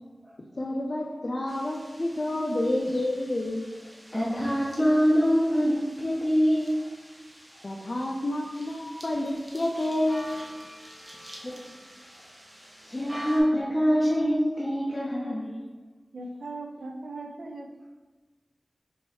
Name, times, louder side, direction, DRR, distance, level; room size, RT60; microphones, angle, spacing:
voice 1, 0.6-3.7 7.6-10.3, left 1 dB, 50° left, 0 dB, 0.4 m, -29 dB
sound 1, 1.5-13.4, equal, 25° right, 0.8 m, -47 dB
voice 2, 4.1-6.8 11.2-11.7 12.8-15.6, equal, 15° left, -8 dB, 0.8 m, -25 dB
voice 3, 16.1-17.9, right 2 dB, 85° right, 3 dB, 0.4 m, -39 dB
4.4 x 3.1 x 3.1 m, 1.2 s
wide cardioid pair, 70°, 0 cm